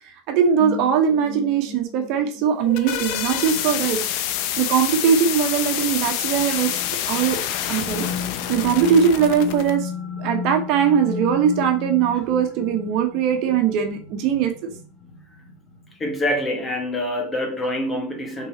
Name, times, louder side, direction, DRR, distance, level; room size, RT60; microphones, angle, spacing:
voice 1, 0.3-4.0 4.6-6.8 7.1-7.4 7.7-8.1 8.5-9.9 10.2-14.7, right 7 dB, 55° right, 1.3 m, -20 dB
sound 1, 0.6-16.8, left 6 dB, 40° left, 1.2 m, -36 dB
sound 2, 2.4-9.7, left 11 dB, 60° left, 0.7 m, -27 dB
voice 2, 15.9-18.5, left 1 dB, 15° left, 1.4 m, -26 dB
5.5 x 4.1 x 4.3 m
supercardioid pair, 140°, 0 cm